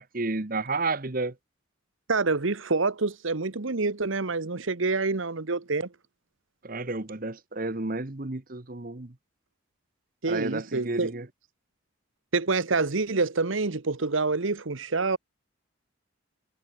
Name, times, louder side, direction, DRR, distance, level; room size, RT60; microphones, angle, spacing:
voice 1, 0.0-1.4 6.6-9.1 10.3-11.3, right 3 dB, 45° right, 1.2 m, -31 dB
voice 2, 2.1-5.9 10.2-11.1 12.3-15.2, right 3 dB, 75° right, 1.1 m, -27 dB
head